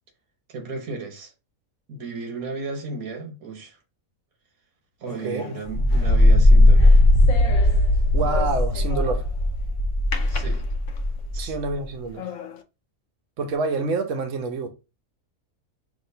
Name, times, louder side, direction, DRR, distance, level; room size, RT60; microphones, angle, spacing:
voice 1, 0.5-1.3 1.9-3.8 5.0-7.1 10.3-10.7 11.3-11.6, right 4 dB, 85° right, 1.5 m, -34 dB
sound 1, 5.1-9.5 10.1-11.2 11.7-11.8 12.2-12.6, left 6 dB, 75° left, 1.0 m, -37 dB
voice 2, 5.2-5.5 8.1-9.2 11.4-12.3 13.4-14.7, right 3 dB, 65° right, 1.1 m, -27 dB
sound 2, 5.7-11.7, left 1 dB, 50° left, 1.1 m, -18 dB
6.1 x 2.8 x 2.7 m
omnidirectional pair, 1.5 m